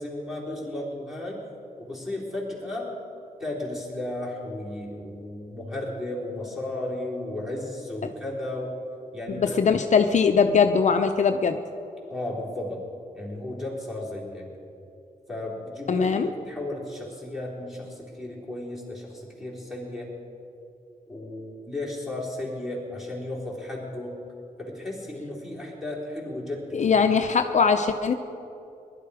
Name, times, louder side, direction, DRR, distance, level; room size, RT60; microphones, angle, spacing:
voice 1, 0.0-1.4 1.8-2.9 3.4-8.8 9.1-9.8 12.1-12.9 13.2-14.5 15.3-20.1 21.1-24.2 24.6-27.1, left 1 dB, 5° right, -5 dB, 3.6 m, -34 dB
voice 2, 9.3-11.6 15.9-16.3 26.7-28.1, left 6 dB, 55° left, 7 dB, 0.6 m, -21 dB
20.5 x 12.0 x 4.9 m, 2.7 s
wide cardioid pair, 125°, 15 cm